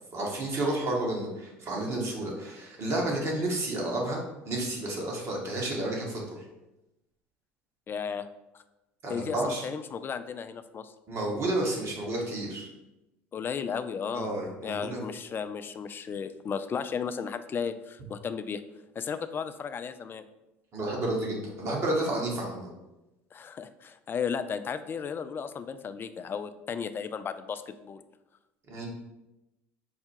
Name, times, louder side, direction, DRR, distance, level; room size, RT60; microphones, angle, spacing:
voice 1, 0.1-6.4 9.0-9.6 11.1-12.7 14.1-15.0 20.7-22.7 28.7-28.9, right 1 dB, 45° right, -2 dB, 1.5 m, -31 dB
voice 2, 7.9-8.3 8.5-8.6 9.1-10.9 13.3-14.3 14.6-18.6 19.0-20.2 23.3-28.0, left 6 dB, 35° left, 11 dB, 0.4 m, -34 dB
4.8 x 2.2 x 4.4 m, 0.97 s
hypercardioid pair, 80°, 6 cm